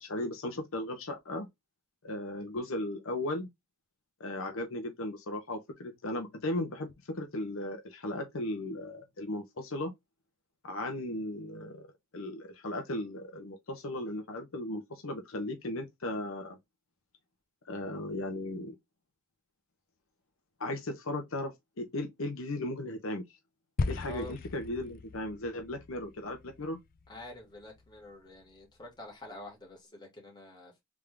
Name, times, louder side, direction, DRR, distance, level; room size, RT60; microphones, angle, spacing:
voice 1, 0.0-1.5 2.0-3.5 4.2-9.9 10.6-11.9 12.1-16.6 17.6-18.7 20.6-23.4 23.9-26.8, left 1 dB, 65° left, 0.9 m, -36 dB
sound 1, 23.8-28.2, left 3 dB, 40° left, 0.4 m, -38 dB
voice 2, 24.0-24.4 27.1-30.8, left 1 dB, 20° left, 2.0 m, -47 dB
3.7 x 3.6 x 3.3 m
head